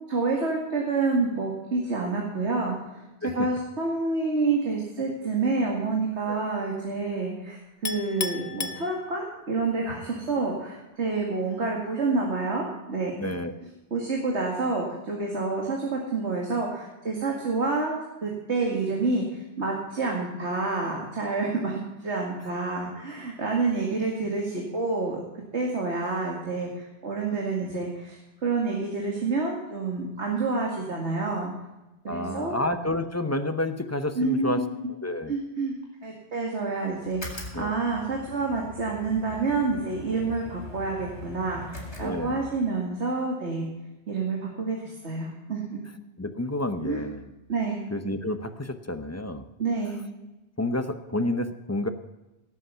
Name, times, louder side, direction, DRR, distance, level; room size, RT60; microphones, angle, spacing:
voice 1, 0.1-13.3 13.9-17.9 18.2-25.2 25.5-31.5 32.0-32.6 34.2-34.6 35.3-35.7 36.0-43.7 44.1-45.8 46.8-47.0 47.5-47.8 49.6-50.0, right 3 dB, 80° right, -1 dB, 2.4 m, -28 dB
Chink clink, 7.9-9.5, left 5 dB, 50° left, 0.8 m, -34 dB
voice 2, 13.2-13.5 32.1-34.6 35.0-35.3 37.5-37.8 42.0-42.5 46.2-47.3 47.9-49.4 50.6-51.9, left 1 dB, 15° left, 8 dB, 0.8 m, -29 dB
sound 1, 37.0-42.7, left 1 dB, 75° left, 4.1 m, -42 dB
18.0 x 8.2 x 5.7 m, 1.0 s
omnidirectional pair, 1.1 m